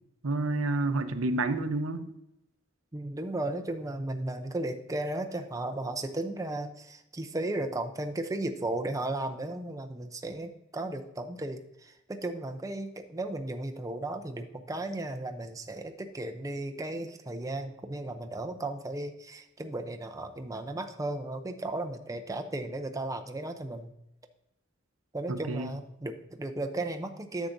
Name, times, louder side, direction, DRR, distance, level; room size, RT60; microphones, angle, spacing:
voice 1, 0.2-2.1 25.3-25.7, right 2 dB, 75° right, 9 dB, 0.7 m, -29 dB
voice 2, 2.9-23.9 25.1-27.5, right 2 dB, 15° right, 5 dB, 0.6 m, -35 dB
9.9 x 7.2 x 2.6 m, 0.84 s
head